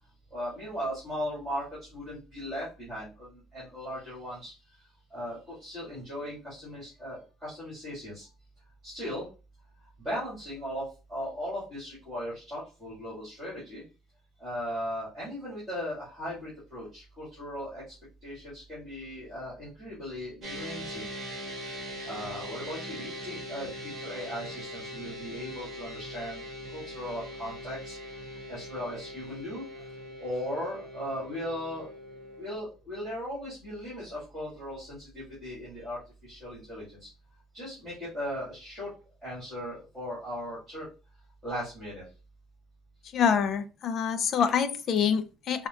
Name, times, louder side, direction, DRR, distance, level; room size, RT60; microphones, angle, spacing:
voice 1, 0.3-4.5 5.1-8.3 8.8-9.3 10.0-13.8 14.4-17.8 18.2-21.0 22.0-26.4 26.7-28.0 28.5-29.6 30.2-31.9 32.4-37.1 37.5-38.9 39.2-40.9 41.4-42.0, equal, 10° right, -10 dB, 1.9 m, -37 dB
sound 1, 20.4-32.6, equal, 25° right, 1.2 m, -41 dB
voice 2, 43.1-45.7, left 7 dB, 35° left, 11 dB, 0.3 m, -26 dB
4.7 x 2.1 x 2.4 m, 0.32 s
cardioid pair, 180°, 0 cm